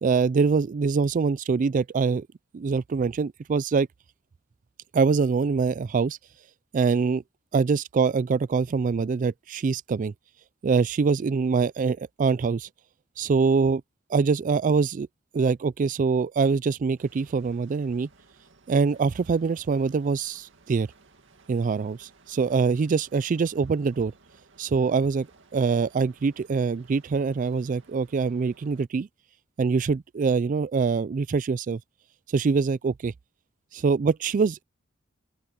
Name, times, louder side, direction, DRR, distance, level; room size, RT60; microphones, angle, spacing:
voice 1, 0.0-2.3 2.5-3.9 4.9-6.2 6.7-7.2 7.5-10.1 10.6-12.7 13.2-13.8 14.1-15.1 15.3-18.1 18.7-20.9 21.5-24.1 24.6-25.3 25.5-29.1 29.6-31.8 32.3-33.1 33.7-34.6, right 5 dB, 40° right, 0.3 m, -24 dB
sound 1, 17.0-28.9, right 3 dB, 65° right, 2.3 m, -58 dB
open air
head